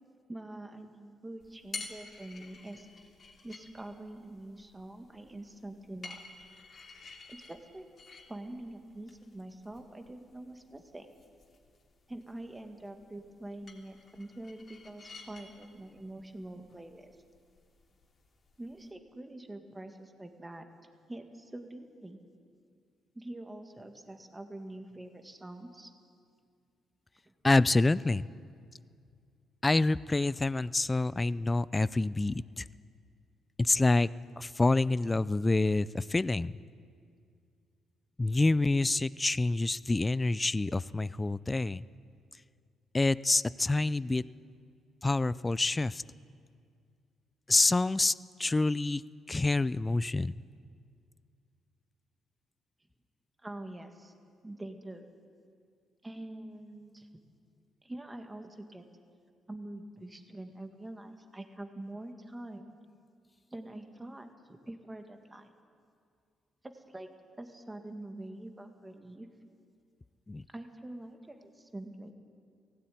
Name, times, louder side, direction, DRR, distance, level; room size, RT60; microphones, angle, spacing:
voice 1, 0.3-2.9 3.4-6.2 7.3-7.8 8.3-11.1 12.1-17.1 18.6-20.7 21.1-22.2 23.1-25.9 27.3-27.4 53.4-54.1 54.4-55.1 56.0-57.1 57.8-58.8 59.5-62.7 63.5-65.5 66.7-67.1 67.4-69.3 70.5-72.1, right 1 dB, 15° right, 5 dB, 2.0 m, -45 dB
sound 1, 1.4-18.9, left 4 dB, 45° left, 2.9 m, -51 dB
voice 2, 27.4-28.3 29.6-32.7 33.6-34.1 34.4-36.5 38.2-41.8 42.9-44.2 45.0-46.0 47.5-49.0 49.3-50.3 70.3-70.4, left 2 dB, 20° left, 18 dB, 0.4 m, -27 dB
16.5 x 16.5 x 9.3 m, 2.2 s
cardioid pair, 90°, 0 cm